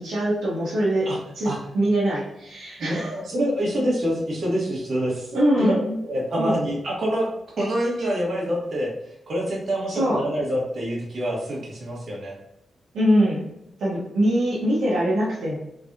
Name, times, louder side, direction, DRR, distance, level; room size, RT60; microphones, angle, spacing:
voice 1, 0.0-3.2 5.3-6.0 6.4-6.5 9.9-10.3 12.9-13.5 13.8-15.6, equal, 90° right, -8 dB, 1.0 m, -23 dB
voice 2, 3.2-5.7 6.1-7.3 7.6-8.9 9.3-12.4, equal, 55° right, -3 dB, 1.4 m, -26 dB
3.6 x 3.3 x 2.7 m, 0.85 s
cardioid pair, 105°, 0 cm